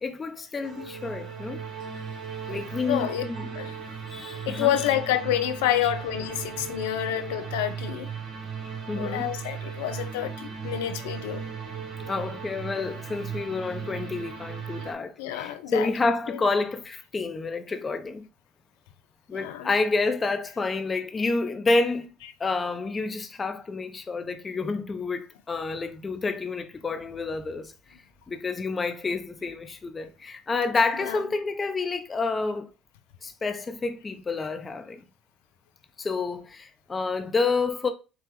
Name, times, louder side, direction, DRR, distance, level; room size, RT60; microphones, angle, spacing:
voice 1, 0.0-1.6 2.5-3.5 4.1-4.8 8.9-9.3 12.1-18.2 19.3-22.1 22.4-27.7 28.3-32.7 33.2-35.0 36.0-37.9, left 3 dB, 30° left, 0.8 m, -29 dB
sound 1, 0.6-14.9, right 6 dB, 60° right, 1.1 m, -37 dB
voice 2, 2.9-3.2 3.5-3.8 4.5-8.1 8.9-11.4 14.8-14.9 15.2-15.9 16.3-16.4 19.3-19.7 31.0-31.3, left 12 dB, 75° left, 0.4 m, -28 dB
6.0 x 2.4 x 3.1 m
hypercardioid pair, 60°, 0 cm